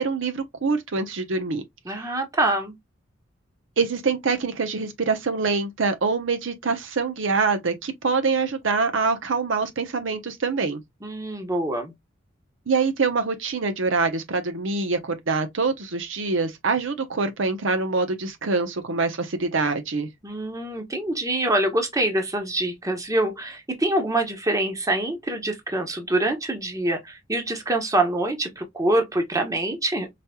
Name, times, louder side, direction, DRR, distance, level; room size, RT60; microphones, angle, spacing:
voice 1, 0.0-1.6 3.8-10.8 12.7-20.1, right 4 dB, 75° right, 0.8 m, -25 dB
voice 2, 1.9-2.7 11.0-11.9 20.2-30.1, right 1 dB, 15° right, 1.0 m, -25 dB
5.0 x 2.9 x 2.2 m
head